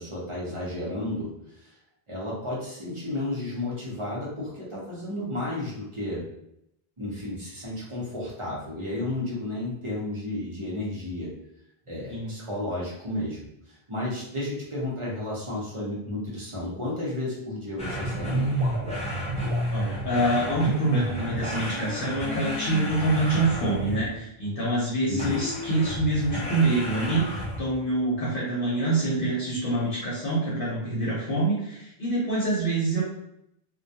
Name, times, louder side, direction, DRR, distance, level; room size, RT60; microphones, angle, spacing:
voice 1, 0.0-1.7 2.1-6.2 7.0-11.3 11.9-18.6 25.1-25.4, left 1 dB, 35° right, -6 dB, 0.7 m, -32 dB
sound 1, 17.8-24.2 25.2-27.8, right 1 dB, 10° left, 0.4 m, -30 dB
sound 2, 18.6-19.7 20.3-20.7 21.4-21.7, equal, 70° right, 1.0 m, -38 dB
voice 2, 19.7-33.0, right 2 dB, 60° left, -6 dB, 0.8 m, -26 dB
2.2 x 2.2 x 2.7 m, 0.77 s
omnidirectional pair, 1.1 m